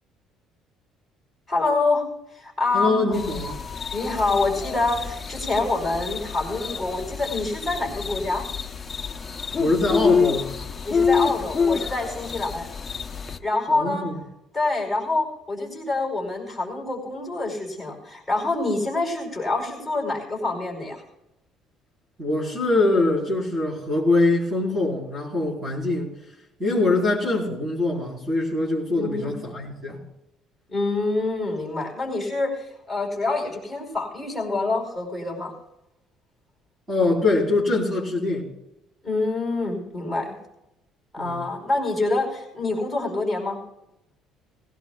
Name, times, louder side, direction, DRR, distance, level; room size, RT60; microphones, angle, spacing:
voice 1, 1.5-2.0 2.3-3.1 3.9-8.5 10.9-12.7 13.4-14.1 14.5-21.0 28.9-29.3 30.7-35.5 39.0-40.3 41.1-43.6, left 2 dB, ahead, -3 dB, 4.7 m, -26 dB
voice 2, 2.7-3.6 9.6-10.5 13.7-14.2 22.2-26.1 26.6-30.0 36.9-38.5 41.2-41.4, left 2 dB, 20° right, -4 dB, 3.9 m, -23 dB
sound 1, 3.1-13.4, left 5 dB, 20° left, 0.7 m, -27 dB
19.5 x 16.5 x 2.3 m, 0.89 s
cardioid pair, 135°, 0 cm